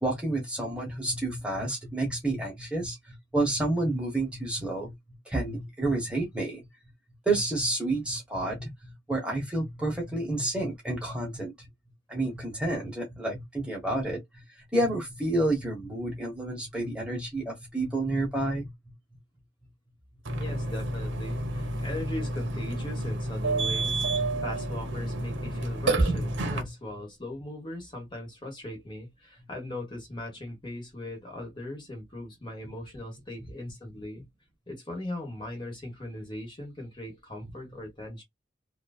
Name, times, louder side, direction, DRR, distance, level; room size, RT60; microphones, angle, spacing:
voice 1, 0.0-4.9 5.3-6.7 7.2-11.7 12.1-14.4 14.7-18.7 21.6-21.7 26.1-26.2 26.6-26.7 33.4-33.5, right 2 dB, 5° right, 1.1 m, -30 dB
voice 2, 20.3-24.0 24.4-34.2 34.7-38.2, left 1 dB, 25° left, 1.3 m, -39 dB
Burping eructation, 20.3-26.6, right 2 dB, 85° right, 0.9 m, -30 dB
3.0 x 2.5 x 2.3 m
head